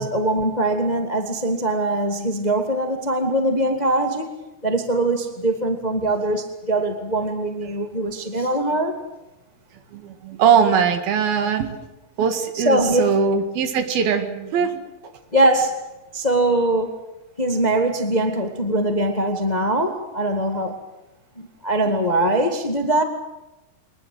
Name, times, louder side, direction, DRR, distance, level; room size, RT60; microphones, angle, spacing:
voice 1, 0.0-4.3 4.6-9.0 12.5-13.1 15.3-15.8 16.1-16.9 17.4-20.8 21.4-23.0, right 1 dB, 20° left, 6 dB, 1.1 m, -22 dB
voice 2, 9.9-11.8 12.2-14.8, right 7 dB, 80° right, 8 dB, 3.9 m, -21 dB
24.0 x 20.5 x 7.8 m, 1.0 s
omnidirectional pair, 4.2 m